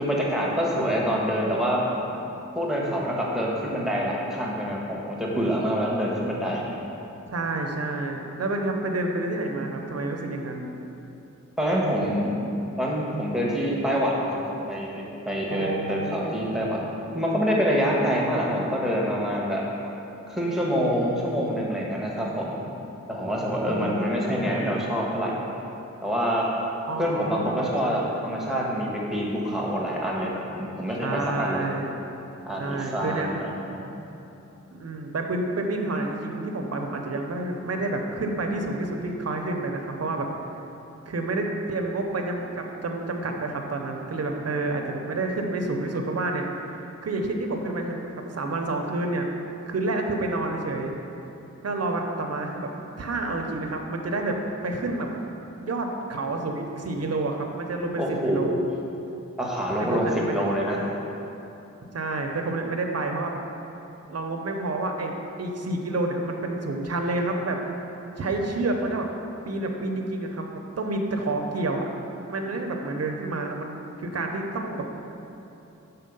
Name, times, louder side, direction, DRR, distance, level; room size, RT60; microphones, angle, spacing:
voice 1, 0.0-1.8 2.5-6.7 11.6-12.3 12.8-14.9 15.2-16.8 17.1-19.6 20.3-22.6 23.1-25.4 26.0-26.5 27.0-31.7 32.4-33.9 58.0-58.7 59.4-60.8, equal, ahead, -4 dB, 1.3 m, -26 dB
voice 2, 7.3-10.7 15.5-16.4 23.6-24.8 26.9-27.7 31.0-31.9 32.6-33.3 34.7-40.3 41.1-49.3 49.7-50.9 51.6-52.7 53.0-54.4 54.6-55.1 55.6-58.6 59.9-60.4 61.9-63.4 64.1-65.1 65.4-67.6 68.2-69.1 69.4-71.8 72.3-74.9, right 2 dB, 55° right, 2 dB, 0.7 m, -29 dB
6.5 x 4.1 x 5.4 m, 3.0 s
wide cardioid pair, 60°, 29 cm